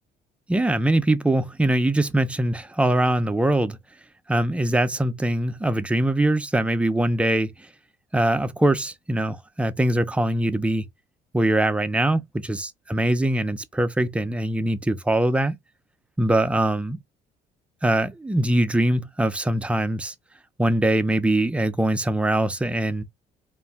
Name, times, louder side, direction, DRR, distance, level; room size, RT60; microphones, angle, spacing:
voice 1, 0.5-3.8 4.3-7.5 8.1-10.9 11.3-15.6 16.2-17.0 17.8-20.1 20.6-23.0, right 1 dB, 5° right, 0.4 m, -22 dB
2.5 x 2.1 x 3.3 m
cardioid pair, 110°, 17 cm